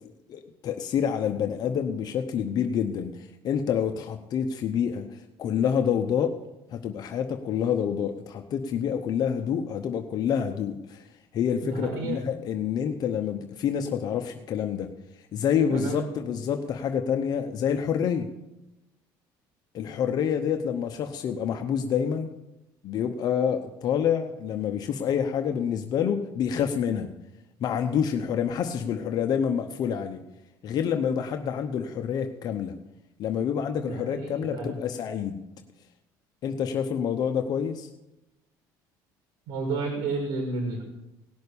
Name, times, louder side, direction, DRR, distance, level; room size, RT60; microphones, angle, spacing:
voice 1, 0.3-6.4 6.7-11.1 11.3-14.9 15.3-18.3 19.7-22.3 22.8-27.1 27.6-30.2 30.6-32.8 33.2-35.5 36.4-37.9, left 8 dB, 50° left, 6 dB, 0.9 m, -27 dB
voice 2, 11.6-12.2 15.7-16.0 33.8-34.8 39.5-40.8, right 3 dB, 90° right, 2 dB, 2.3 m, -31 dB
18.0 x 6.4 x 7.0 m, 0.94 s
cardioid pair, 130°, 8 cm